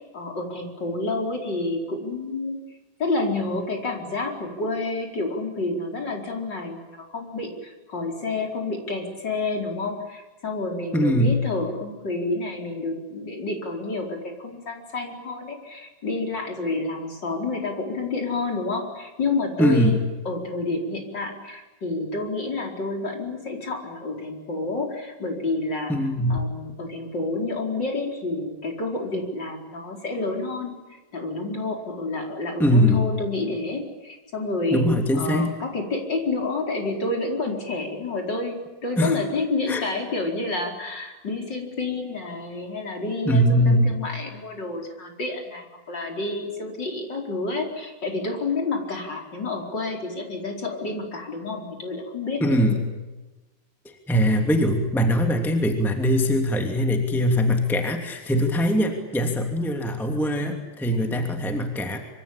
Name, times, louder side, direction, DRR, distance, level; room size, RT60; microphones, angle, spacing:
voice 1, 0.1-2.6 3.0-25.9 26.3-34.8 35.2-52.8, left 3 dB, 25° left, 2 dB, 4.6 m, -29 dB
voice 2, 10.9-11.4 19.6-20.0 25.9-26.4 32.6-33.1 34.7-35.6 39.0-39.2 39.7-39.8 43.2-44.0 52.4-52.8 54.1-62.0, equal, ahead, 3 dB, 1.5 m, -21 dB
26.0 x 25.5 x 8.8 m, 1.1 s
omnidirectional pair, 5.3 m